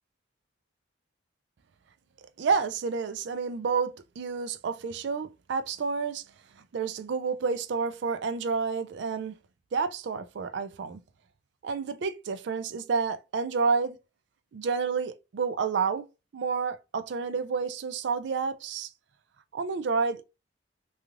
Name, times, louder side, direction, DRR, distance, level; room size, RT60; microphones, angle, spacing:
voice 1, 2.4-6.2 6.7-9.3 9.7-11.0 11.6-14.0 14.5-16.1 16.3-18.9 19.5-20.2, right 5 dB, 65° right, 0.3 m, -29 dB
3.1 x 2.4 x 2.4 m
head